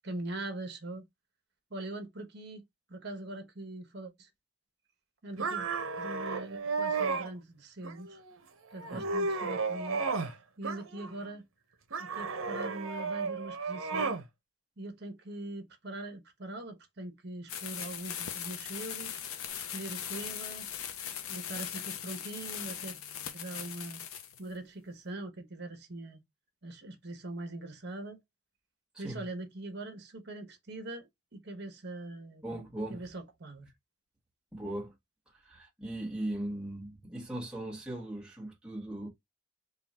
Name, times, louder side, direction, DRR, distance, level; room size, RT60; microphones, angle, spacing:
voice 1, 0.0-1.0 1.7-2.6 2.9-4.3 5.2-5.7 6.0-8.2 8.7-10.0 10.6-11.4 12.0-14.2 14.8-20.7 21.3-23.0 23.3-24.0 24.4-26.2 26.6-28.2 29.0-32.4 32.9-33.7, right 2 dB, 50° right, 1.1 m, -42 dB
sound 1, 5.4-7.3 7.8-8.3 8.7-10.3 10.6-11.3 11.9-14.2, right 4 dB, 70° right, 0.8 m, -33 dB
sound 2, 17.5-24.4, left 9 dB, 80° left, 0.7 m, -39 dB
voice 2, 28.9-29.2 32.4-33.0 34.5-34.9 35.3-39.1, right 1 dB, 5° right, 1.3 m, -38 dB
3.9 x 2.4 x 4.1 m
head